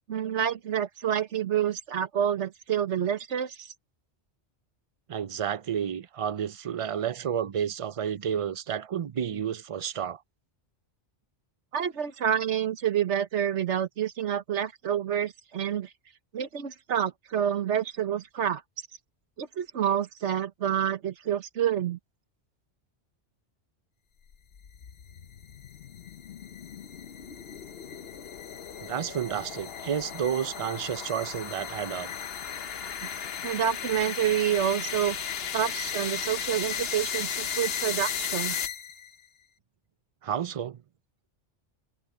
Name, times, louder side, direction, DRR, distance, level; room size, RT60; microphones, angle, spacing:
voice 1, 0.1-3.7 11.7-15.9 16.3-18.6 19.4-22.0 33.0-33.1 33.4-35.2 35.5-38.6, right 9 dB, 80° right, 1.3 m, -28 dB
voice 2, 5.1-10.2 28.9-32.1 40.2-40.8, right 8 dB, 45° right, 0.4 m, -31 dB
sound 1, 24.3-39.1, left 7 dB, 60° left, 1.0 m, -35 dB
omnidirectional pair, 1.2 m